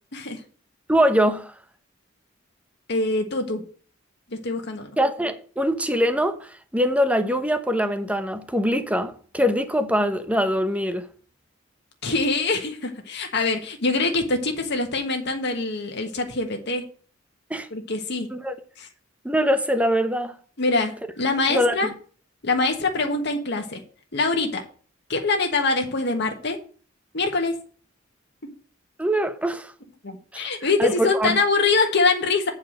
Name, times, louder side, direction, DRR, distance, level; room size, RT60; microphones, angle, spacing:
voice 1, 0.9-1.5 5.0-11.1 17.5-17.7 18.3-18.6 19.2-20.4 21.5-21.9 29.0-29.7 30.3-30.5 30.8-31.4, equal, 5° right, 0.9 m, -23 dB
voice 2, 2.9-3.6 4.4-4.9 12.0-16.8 17.7-18.3 18.8-18.9 20.6-21.9 22.4-23.8 24.1-24.6 25.1-26.6 27.1-27.5 30.0-32.5, left 3 dB, 60° left, 1.5 m, -24 dB
8.4 x 4.8 x 7.3 m
head